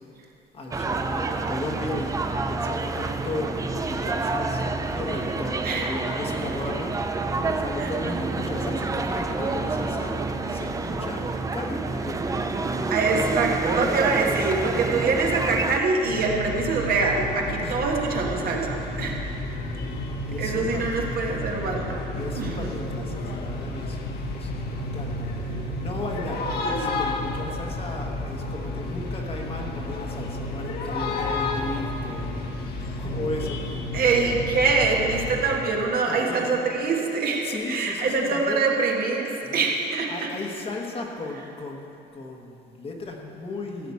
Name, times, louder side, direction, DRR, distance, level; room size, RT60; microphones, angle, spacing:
voice 1, 0.5-10.2 10.5-12.3 17.6-17.8 20.3-21.1 22.1-25.5 25.8-32.7 32.9-33.8 36.1-36.6 37.4-38.7 39.4-39.6 40.1-43.9, left 2 dB, 30° left, 1 dB, 1.2 m, -35 dB
sound 1, 0.7-15.8, right 3 dB, 20° right, 0.5 m, -28 dB
voice 2, 12.9-19.6 20.4-22.0 22.3-22.7 26.6-27.0 33.9-40.3, right 4 dB, 55° right, -1 dB, 1.6 m, -25 dB
sound 2, 16.0-35.4, left 2 dB, 60° left, 1.4 m, -31 dB
15.0 x 5.1 x 8.5 m, 2.8 s
cardioid pair, 145°, 19 cm